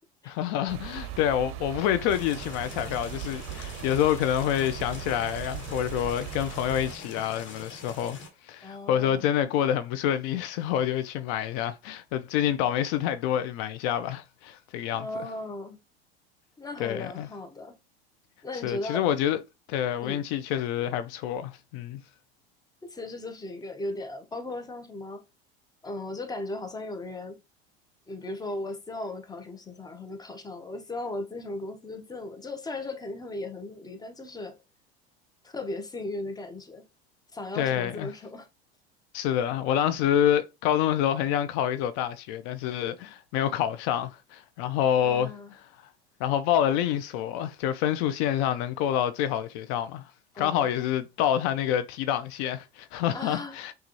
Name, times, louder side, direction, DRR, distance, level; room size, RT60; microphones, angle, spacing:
voice 1, 0.3-8.2 8.4-15.3 16.8-17.3 18.6-19.4 19.7-22.0 37.6-38.1 39.1-45.6 46.2-50.0 50.4-53.7, left 10 dB, 55° left, 0.5 m, -27 dB
sound 1, 0.7-7.0, right 10 dB, 45° right, 0.7 m, -39 dB
sound 2, 2.1-8.3, left 3 dB, 40° left, 1.5 m, -44 dB
voice 2, 8.6-9.3 14.9-15.8 16.6-17.7 18.4-19.1 20.0-20.2 22.8-25.2 25.8-27.4 28.1-34.6 35.4-36.8 37.3-38.5 45.0-45.5 50.3-50.7 53.1-53.6, left 2 dB, 10° left, 0.8 m, -37 dB
5.9 x 2.4 x 3.0 m
hypercardioid pair, 80°, 31 cm